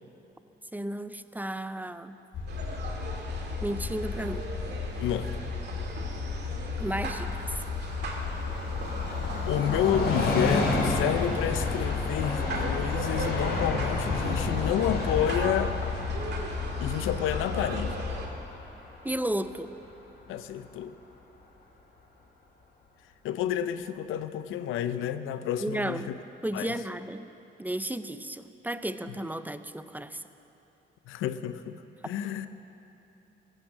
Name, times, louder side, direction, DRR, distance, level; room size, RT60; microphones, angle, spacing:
voice 1, 0.7-2.2 3.6-4.5 6.8-7.6 19.0-19.7 25.6-26.1 26.4-27.3 27.6-30.2, right 1 dB, 10° right, 11 dB, 0.6 m, -33 dB
sound 1, 2.3-18.2, left 5 dB, 70° left, 3.4 m, -34 dB
sound 2, 2.5-18.3, right 3 dB, 55° right, 2.3 m, -39 dB
voice 2, 5.0-5.3 9.5-15.9 16.8-18.0 20.3-20.9 23.2-26.0 26.5-26.7 31.1-31.8 32.0-32.5, left 10 dB, 90° left, 12 dB, 0.6 m, -30 dB
Train, 7.0-20.3 20.6-20.7, left 3 dB, 55° left, 3.3 m, -32 dB
15.0 x 11.5 x 7.3 m, 3.0 s
cardioid pair, 90°, 20 cm